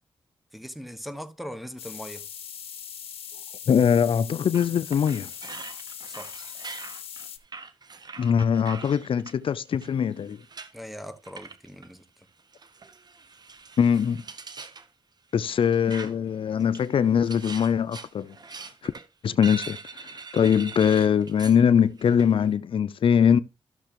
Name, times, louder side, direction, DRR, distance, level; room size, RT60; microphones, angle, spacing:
voice 1, 0.5-2.3 6.1-6.3 10.7-12.0, equal, ahead, 1.2 m, -40 dB
sound 1, 1.8-7.4, left 8 dB, 90° left, 1.0 m, -40 dB
voice 2, 3.7-5.3 8.2-10.4 13.8-14.2 15.3-18.4 18.8-18.9 19.2-20.1 20.3-23.4, left 7 dB, 70° left, 0.4 m, -22 dB
sound 2, 4.5-9.3 9.8-10.7 11.2-11.9 12.5-14.9 15.5-16.3 16.6-21.6 22.0-22.3, right 4 dB, 45° right, 1.0 m, -42 dB
14.0 x 6.5 x 3.0 m
cardioid pair, 75°, 10 cm